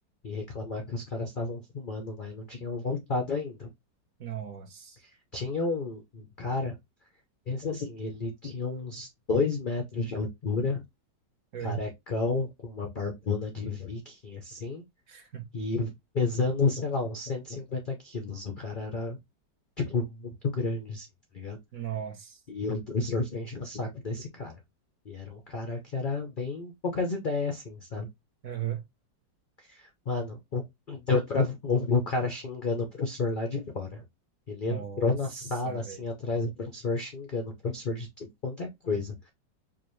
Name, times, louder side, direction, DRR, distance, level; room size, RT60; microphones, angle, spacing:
voice 1, 0.2-3.7 5.3-6.8 7.5-10.8 11.6-14.8 15.5-19.2 19.8-21.1 21.3-21.6 22.5-24.5 25.1-28.1 29.7-34.0 34.5-39.3, left 3 dB, 70° left, 0.4 m, -31 dB
voice 2, 4.2-5.0 11.5-11.8 15.1-15.5 21.7-22.4 28.4-28.8 34.7-35.2 35.6-36.0, right 10 dB, 60° right, 1.2 m, -36 dB
4.9 x 2.4 x 3.0 m
omnidirectional pair, 2.0 m